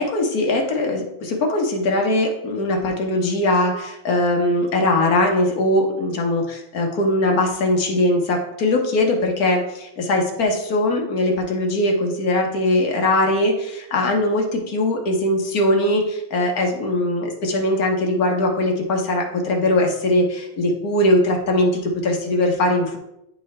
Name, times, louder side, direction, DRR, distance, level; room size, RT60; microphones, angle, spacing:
voice 1, 0.0-23.0, left 1 dB, 50° left, 1 dB, 1.3 m, -20 dB
10.0 x 3.8 x 3.2 m, 0.84 s
omnidirectional pair, 2.3 m